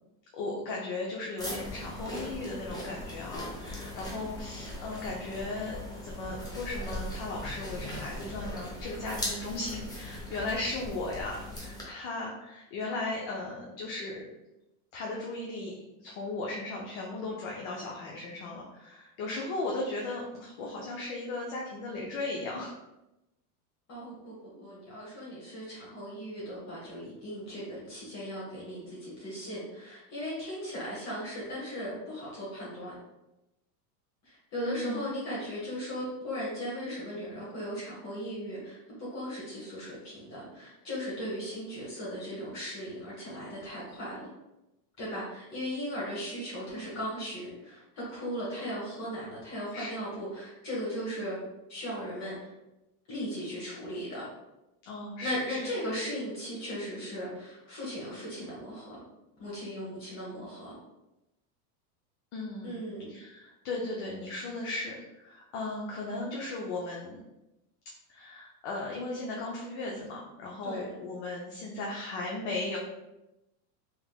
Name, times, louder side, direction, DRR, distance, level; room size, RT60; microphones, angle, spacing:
voice 1, 0.3-14.3 14.9-22.7 34.6-35.1 49.7-50.0 54.8-55.7 62.3-67.2 68.1-72.8, left 2 dB, 50° left, -2 dB, 0.8 m, -36 dB
sound 1, 1.4-11.8, left 1 dB, 10° left, 0.8 m, -39 dB
voice 2, 4.1-4.4 20.6-20.9 23.9-32.9 34.2-44.3 45.0-51.4 51.7-52.5 53.1-54.3 55.2-59.0 59.4-60.7 62.6-63.1 70.6-70.9, equal, 35° left, -7 dB, 1.4 m, -37 dB
3.5 x 3.2 x 2.3 m, 0.94 s
supercardioid pair, 115°, 46 cm